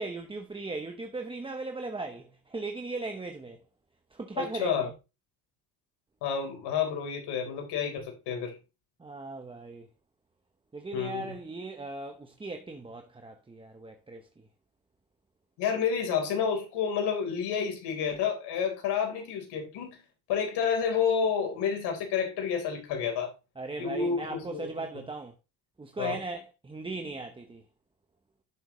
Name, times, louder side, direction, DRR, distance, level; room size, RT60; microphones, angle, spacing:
voice 1, 0.0-3.6 4.1-4.9 9.0-9.9 10.7-14.4 23.6-25.3 25.8-27.6, right 3 dB, 10° right, 0.9 m, -38 dB
voice 2, 4.6-4.9 6.2-8.6 10.9-11.4 15.6-20.0 20.3-23.3 23.8-24.7 26.0-26.2, left 7 dB, 75° left, 4.1 m, -29 dB
10.0 x 7.8 x 3.1 m
cardioid pair, 115°, 41 cm